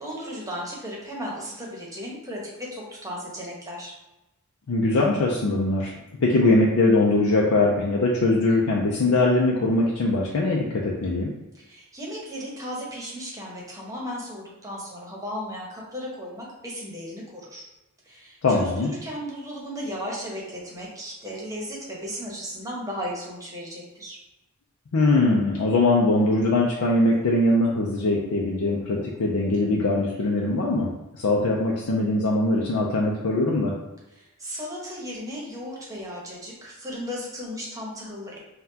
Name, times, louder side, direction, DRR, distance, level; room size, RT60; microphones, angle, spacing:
voice 1, 0.0-2.4 2.7-3.9 11.5-17.7 18.1-24.2 34.1-38.4, equal, 15° right, -3 dB, 0.9 m, -35 dB
voice 2, 4.7-5.9 6.2-11.3 18.4-18.9 24.9-30.9 31.2-33.7, left 2 dB, 85° left, -3 dB, 0.5 m, -21 dB
5.7 x 2.3 x 2.8 m, 0.96 s
head